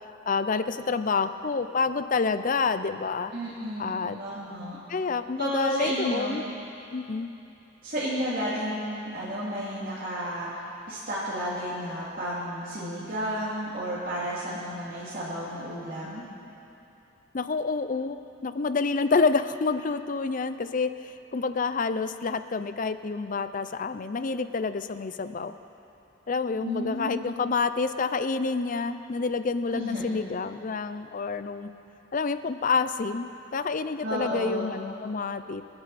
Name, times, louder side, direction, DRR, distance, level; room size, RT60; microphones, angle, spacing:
voice 1, 0.3-3.3 3.8-4.2 4.9-6.4 6.9-7.3 17.3-25.5 26.3-31.7 32.1-35.6, left 4 dB, 40° left, 11 dB, 0.5 m, -28 dB
voice 2, 3.3-4.8 5.4-6.4 7.8-10.5 10.9-16.2 26.6-27.2 29.7-30.0 34.0-34.7, equal, 45° right, -11 dB, 2.6 m, -32 dB
27.5 x 9.6 x 4.2 m, 2.9 s
head